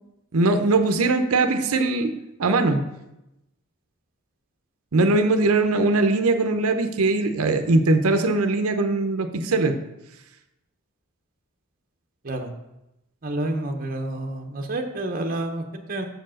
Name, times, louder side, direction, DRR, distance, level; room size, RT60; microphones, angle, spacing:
voice 1, 0.3-2.1 2.4-2.8 4.9-9.7, right 3 dB, 90° right, 7 dB, 0.7 m, -21 dB
voice 2, 13.2-16.0, right 1 dB, 40° right, 4 dB, 0.8 m, -29 dB
6.6 x 4.6 x 6.2 m, 0.91 s
head